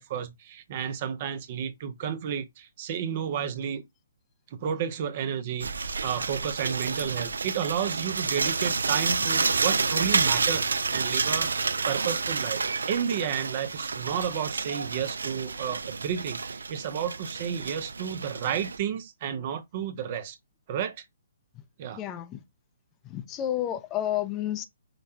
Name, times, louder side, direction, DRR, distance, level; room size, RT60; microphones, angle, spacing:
voice 1, 0.0-3.8 4.5-12.6 12.9-20.4 20.7-21.0 21.8-22.0, right 8 dB, 45° right, 0.6 m, -32 dB
sound 1, 5.6-18.8, right 4 dB, 85° right, 0.3 m, -29 dB
voice 2, 22.0-22.4 23.0-24.7, left 12 dB, 25° left, 0.5 m, -30 dB
5.1 x 2.2 x 2.7 m
hypercardioid pair, 140°, 0 cm